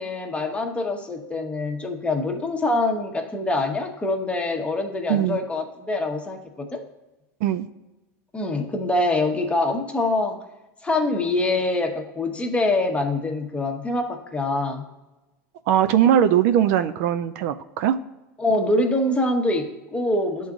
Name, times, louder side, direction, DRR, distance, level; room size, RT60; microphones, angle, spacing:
voice 1, 0.0-6.8 8.3-10.4 10.8-14.8 18.4-20.5, left 2 dB, 10° left, 3 dB, 0.9 m, -24 dB
voice 2, 15.7-18.0, right 10 dB, 60° right, 10 dB, 0.3 m, -20 dB
11.0 x 3.8 x 2.4 m, 1.1 s
hypercardioid pair, 90°, 9 cm